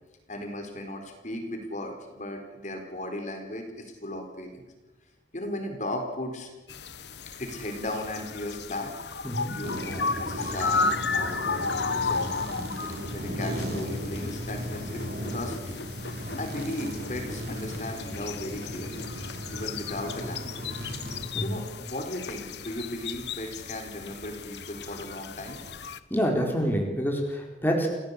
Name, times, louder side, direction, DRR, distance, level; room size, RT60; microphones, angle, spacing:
voice 1, 0.3-4.6 5.3-6.5 7.4-8.9 9.5-11.7 12.0-12.3 13.1-15.0 15.3-15.8 16.4-19.1 19.5-20.7 21.4-25.6, left 1 dB, 45° left, 4 dB, 4.3 m, -36 dB
sound 1, 6.7-26.0, left 4 dB, 75° left, 1.2 m, -34 dB
voice 2, 9.2-9.6 21.3-21.6 26.1-27.9, equal, 10° left, 1 dB, 4.2 m, -27 dB
sound 2, 9.6-21.3, equal, 60° right, 4.6 m, -36 dB
29.0 x 17.5 x 8.4 m, 1.1 s
head